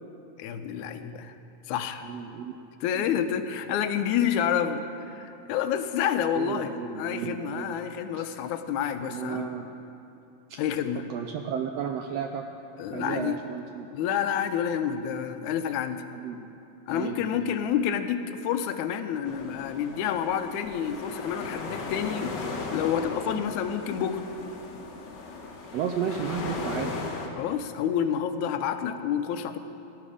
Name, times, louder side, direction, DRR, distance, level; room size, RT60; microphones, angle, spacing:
voice 1, 0.4-1.4 1.7-2.1 2.8-9.5 10.6-11.0 12.8-13.4 13.9-16.0 16.9-22.4 22.7-24.2 27.4-29.6, left 8 dB, 80° left, 9 dB, 2.1 m, -29 dB
voice 2, 2.0-2.5 2.9-3.4 6.4-7.8 8.1-8.2 9.1-9.7 11.1-12.4 12.9-13.9 16.1-16.4 16.9-17.5 23.3-23.4 25.7-26.9, right 8 dB, 80° right, 4 dB, 1.5 m, -33 dB
sound 1, 19.2-27.3, left 3 dB, 55° left, 1.2 m, -37 dB
17.0 x 11.0 x 4.9 m, 2.7 s
omnidirectional pair, 3.5 m